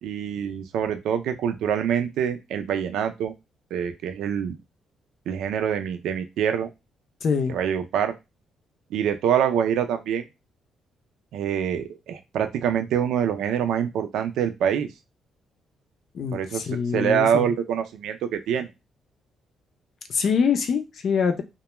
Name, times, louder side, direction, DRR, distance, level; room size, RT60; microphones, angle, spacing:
voice 1, 0.0-3.3 3.7-4.6 5.3-6.7 7.5-8.2 8.9-10.2 11.3-14.9 16.3-16.7 16.9-18.7, right 8 dB, 80° right, 8 dB, 0.4 m, -25 dB
voice 2, 7.2-7.5 16.1-17.5 20.1-21.4, left 6 dB, 60° left, 6 dB, 0.5 m, -24 dB
2.2 x 2.1 x 3.0 m, 0.23 s
cardioid pair, 90°, 0 cm